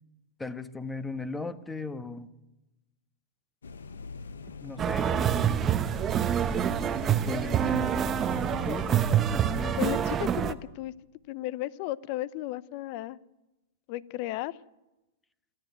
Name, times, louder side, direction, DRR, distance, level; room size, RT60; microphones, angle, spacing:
voice 1, 0.4-2.3 4.6-5.7 7.2-8.1 8.3-9.9, left 3 dB, 10° left, 11 dB, 1.2 m, -37 dB
sound 1, 3.6-10.0, left 4 dB, 85° left, 1.0 m, -42 dB
sound 2, 4.8-10.5, right 9 dB, 25° right, 0.9 m, -26 dB
voice 2, 9.8-10.9 11.3-13.2 13.9-14.6, left 15 dB, 50° left, 19 dB, 0.7 m, -34 dB
28.0 x 10.5 x 9.2 m, 1.0 s
hypercardioid pair, 110°, 0 cm